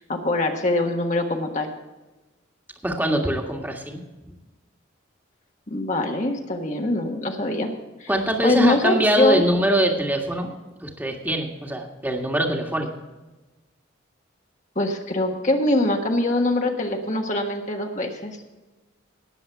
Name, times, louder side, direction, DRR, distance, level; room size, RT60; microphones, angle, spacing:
voice 1, 0.0-1.7 5.7-7.7 8.0-8.1 8.4-9.4 14.7-18.4, left 2 dB, 40° left, 2 dB, 1.4 m, -23 dB
voice 2, 2.8-4.0 8.1-10.5 10.8-12.9, right 1 dB, 10° right, 1 dB, 1.7 m, -23 dB
18.5 x 7.6 x 4.6 m, 1.1 s
head